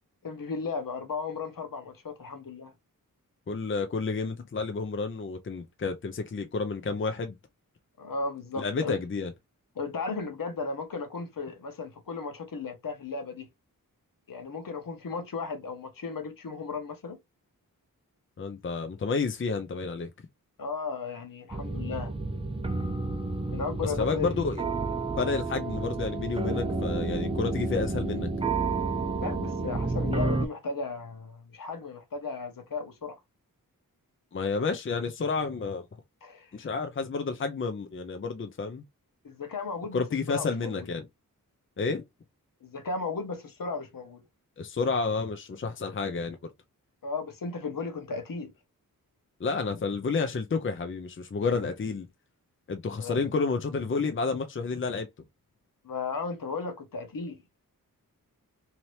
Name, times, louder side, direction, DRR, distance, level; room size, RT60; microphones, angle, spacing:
voice 1, 0.2-2.7 8.0-9.0 9.8-13.5 14.3-17.2 20.6-22.1 23.5-24.3 29.2-33.1 36.2-36.5 39.2-40.0 40.3-40.8 42.6-44.2 47.0-48.5 53.0-53.2 55.8-57.4, left 4 dB, 70° left, 1.0 m, -35 dB
voice 2, 3.5-7.4 8.6-9.3 18.4-20.1 23.8-24.6 25.2-28.3 34.3-35.8 36.5-38.8 39.9-41.1 41.8-42.0 44.6-46.4 49.4-52.1 52.7-55.1, left 4 dB, 35° left, 0.5 m, -30 dB
sound 1, 21.5-30.5, right 3 dB, 15° right, 0.5 m, -30 dB
2.9 x 2.8 x 3.1 m
wide cardioid pair, 95°, 35 cm